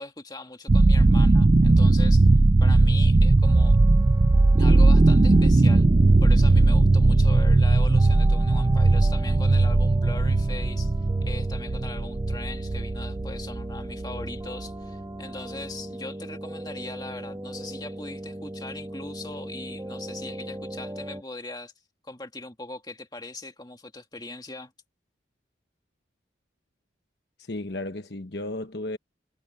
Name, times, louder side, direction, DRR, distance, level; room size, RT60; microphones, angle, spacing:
voice 1, 0.0-2.3 2.6-3.8 4.6-5.9 6.2-10.9 11.2-21.7 22.0-24.7, left 2 dB, 20° left, 2.1 m, -40 dB
sound 1, 0.7-14.6, right 2 dB, 30° right, 0.4 m, -18 dB
sound 2, 3.4-21.2, right 1 dB, 15° right, 1.7 m, -39 dB
voice 2, 27.4-29.0, left 2 dB, 60° left, 1.2 m, -34 dB
head